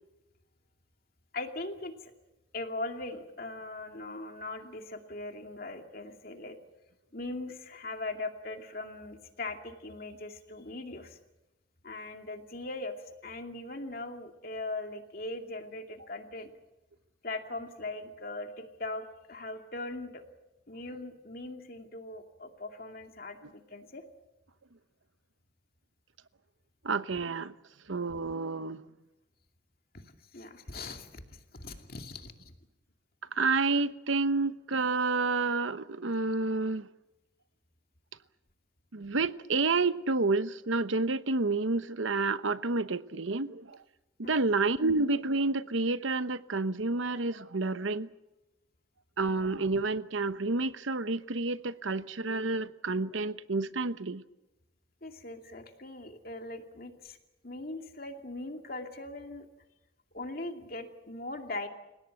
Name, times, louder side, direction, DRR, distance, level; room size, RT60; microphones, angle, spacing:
voice 1, 1.3-2.1 2.5-6.6 7.1-11.2 11.8-12.9 13.2-16.5 17.2-20.2 20.7-24.0 29.9-30.0 30.3-32.5 44.2-44.4 55.0-57.2 57.4-59.5 60.1-61.7, left 2 dB, 50° left, 2.5 m, -40 dB
voice 2, 26.8-27.5 27.9-28.8 33.3-36.9 38.9-43.8 44.2-48.1 49.2-54.2, right 3 dB, 80° right, 1.0 m, -29 dB
29.5 x 17.5 x 7.9 m
head